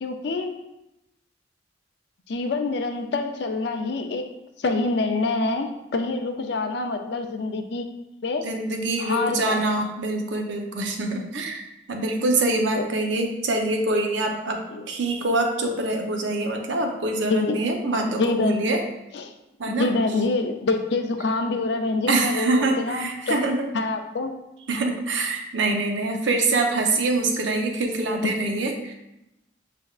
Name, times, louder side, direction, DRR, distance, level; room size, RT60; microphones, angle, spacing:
voice 1, 0.0-0.5 2.3-4.3 4.6-7.9 8.2-8.4 9.0-9.6 12.8-12.9 14.7-14.9 17.3-17.6 18.1-18.8 19.1-19.3 19.7-23.4 23.7-24.3 28.2-28.3, left 3 dB, 60° left, 5 dB, 0.4 m, -26 dB
voice 2, 8.4-18.8 19.6-19.9 22.1-23.6 24.7-28.9, right 2 dB, 75° right, 3 dB, 0.6 m, -25 dB
5.9 x 3.4 x 2.4 m, 0.90 s
head